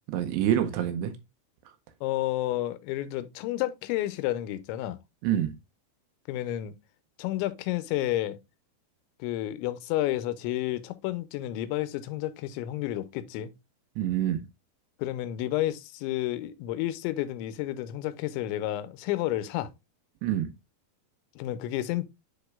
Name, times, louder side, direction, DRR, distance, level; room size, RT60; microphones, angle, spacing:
voice 1, 0.1-1.1 5.2-5.5 14.0-14.4 20.2-20.5, right 11 dB, 75° right, 2.8 m, -26 dB
voice 2, 2.0-5.0 6.3-6.8 7.2-8.4 9.2-13.5 15.0-19.7 21.4-22.1, left 14 dB, 90° left, 3.0 m, -31 dB
9.9 x 4.3 x 2.2 m
omnidirectional pair, 5.2 m